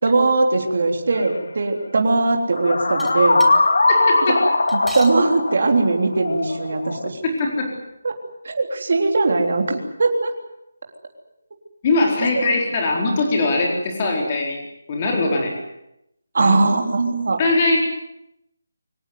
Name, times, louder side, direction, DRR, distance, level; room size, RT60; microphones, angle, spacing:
voice 1, 0.0-3.4 5.0-7.2 8.0-8.1 8.4-10.3 16.3-17.4, right 3 dB, 40° right, 3 dB, 3.6 m, -20 dB
sound 1, 1.1-1.3 2.5-7.1, left 2 dB, 70° left, 2.4 m, -20 dB
sound 2, 3.0-3.5 4.7-5.2 6.1-6.2 6.4-6.5 7.4-7.5, right 2 dB, ahead, 1.0 m, -36 dB
voice 2, 3.9-4.4 7.4-7.7 11.8-14.6 14.9-15.5 16.4-16.6 17.4-17.8, left 2 dB, 20° left, 1 dB, 4.3 m, -21 dB
24.5 x 18.0 x 9.6 m, 0.84 s
figure-of-eight pair, 180°, 0 cm